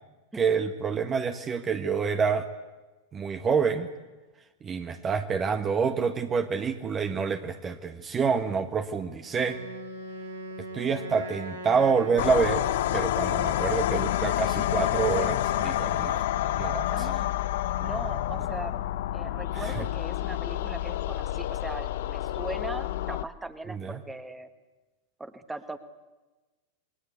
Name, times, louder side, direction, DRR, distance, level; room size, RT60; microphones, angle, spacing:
voice 1, 0.3-2.5 3.1-3.9 4.6-9.6 10.7-12.7 12.9-16.2 16.6-17.2 19.5-19.6 23.7-24.0, right 5 dB, 25° right, 7 dB, 1.4 m, -27 dB
Wind instrument woodwind instrument, 9.3-13.3, right 1 dB, 80° right, 4.6 m, -40 dB
sound 1, 12.2-23.2, left 13 dB, 55° left, 0.9 m, -28 dB
voice 2, 16.9-17.3 17.8-18.8 19.1-24.5 25.2-25.8, right 2 dB, 10° right, 10 dB, 1.6 m, -39 dB
28.5 x 22.5 x 8.3 m, 1.2 s
figure-of-eight pair, 90°, 0 cm